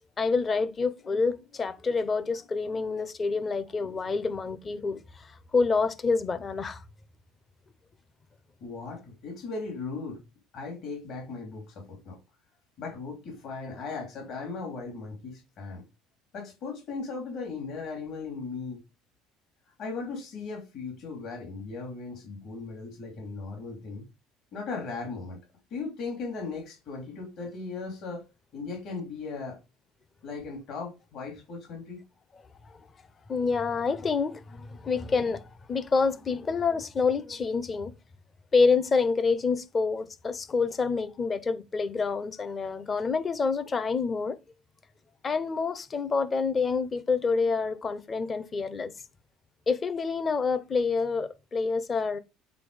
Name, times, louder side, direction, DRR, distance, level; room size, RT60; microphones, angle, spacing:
voice 1, 0.2-6.8 32.7-32.8 33.3-37.9 38.5-44.4 45.2-48.9 49.7-52.2, left 4 dB, 25° left, 0.7 m, -27 dB
voice 2, 8.6-10.2 10.5-12.2 12.8-15.8 16.3-18.8 19.8-24.0 24.5-25.4 25.7-28.2 28.5-29.6 30.2-32.0, left 4 dB, 55° left, 2.8 m, -37 dB
8.3 x 4.0 x 4.8 m
cardioid pair, 140°, 0 cm